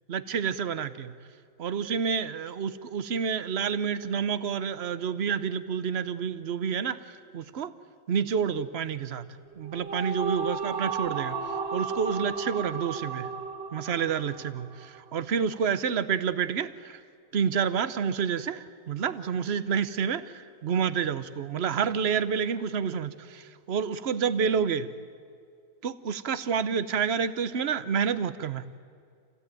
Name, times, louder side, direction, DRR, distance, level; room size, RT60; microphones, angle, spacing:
voice 1, 0.1-1.1 1.6-7.7 8.1-9.3 9.6-11.3 11.7-13.3 13.7-17.0 17.3-20.2 20.6-24.9 25.8-28.7, right 7 dB, 50° right, 14 dB, 0.8 m, -29 dB
sound 1, 9.5-15.0, right 5 dB, 80° right, 2.6 m, -33 dB
28.0 x 16.5 x 9.1 m, 2.3 s
omnidirectional pair, 1.9 m